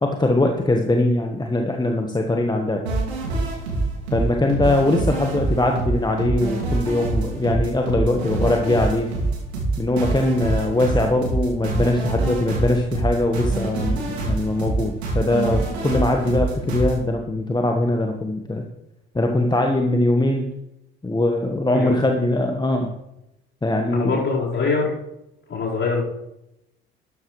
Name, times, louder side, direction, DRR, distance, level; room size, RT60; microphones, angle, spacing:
voice 1, 0.0-2.8 4.1-9.1 9.8-18.6 19.1-20.5 21.0-22.9 23.6-24.2, left 2 dB, 15° left, 3 dB, 1.3 m, -21 dB
sound 1, 2.9-17.0, right 3 dB, 80° right, 2.8 m, -25 dB
voice 2, 23.9-24.9 25.5-26.0, left 4 dB, 40° left, -4 dB, 4.7 m, -23 dB
13.0 x 11.0 x 3.3 m, 0.89 s
figure-of-eight pair, 55°, 32 cm